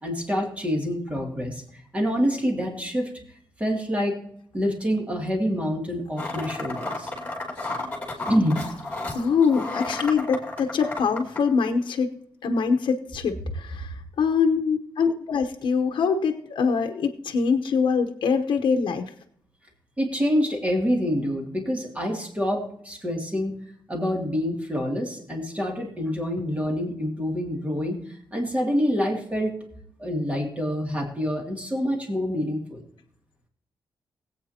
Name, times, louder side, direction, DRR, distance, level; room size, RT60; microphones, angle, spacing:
voice 1, 0.0-3.1 3.6-4.1 4.5-7.1 8.3-8.6 20.0-23.5 23.9-28.0 28.3-29.5 30.0-32.8, equal, 15° right, 0 dB, 2.5 m, -26 dB
sound 1, 6.2-11.4, left 2 dB, 20° left, 2.6 m, -33 dB
voice 2, 9.1-12.1 12.4-19.1, left 5 dB, 85° left, 5 dB, 0.9 m, -24 dB
21.0 x 8.5 x 2.8 m, 0.66 s
wide cardioid pair, 155°, 8 cm